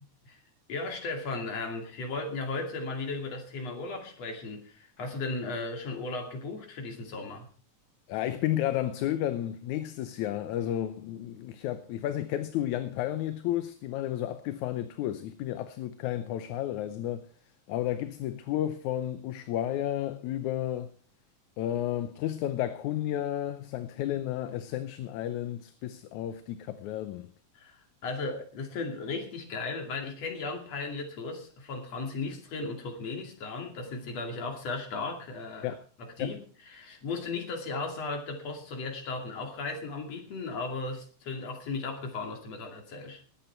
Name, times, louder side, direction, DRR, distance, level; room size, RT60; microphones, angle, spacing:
voice 1, 0.7-7.5 27.6-43.2, left 3 dB, 55° left, 3.5 m, -36 dB
voice 2, 8.1-17.3 17.7-20.9 21.6-27.3 35.6-35.8 36.2-36.4, left 12 dB, 75° left, 2.0 m, -32 dB
20.0 x 8.5 x 4.5 m
omnidirectional pair, 3.6 m